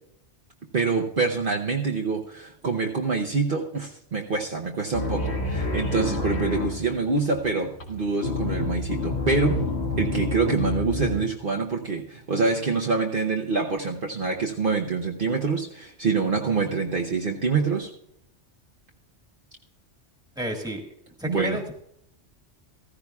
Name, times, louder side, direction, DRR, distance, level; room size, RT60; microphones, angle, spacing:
voice 1, 0.7-9.6 10.0-17.9 21.2-21.6, right 4 dB, 50° right, 0 dB, 1.0 m, -26 dB
sound 1, 4.9-11.2, left 3 dB, 65° left, 2.0 m, -29 dB
voice 2, 20.4-20.8 21.2-21.7, right 1 dB, 5° right, 2 dB, 1.6 m, -30 dB
15.0 x 14.5 x 2.3 m, 0.71 s
omnidirectional pair, 1.2 m